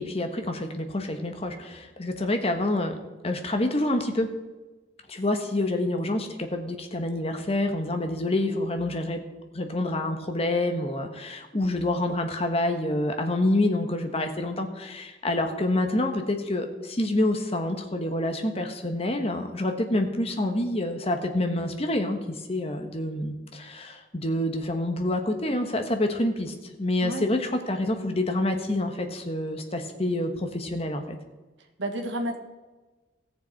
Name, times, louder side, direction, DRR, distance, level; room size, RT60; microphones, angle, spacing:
voice 1, 0.0-3.0 3.2-4.3 5.1-9.2 9.5-22.2 22.5-31.2, left 1 dB, 35° left, 5 dB, 1.2 m, -27 dB
voice 2, 27.0-27.3 31.8-32.4, right 1 dB, 80° right, 4 dB, 1.8 m, -30 dB
17.5 x 6.9 x 4.6 m, 1.2 s
head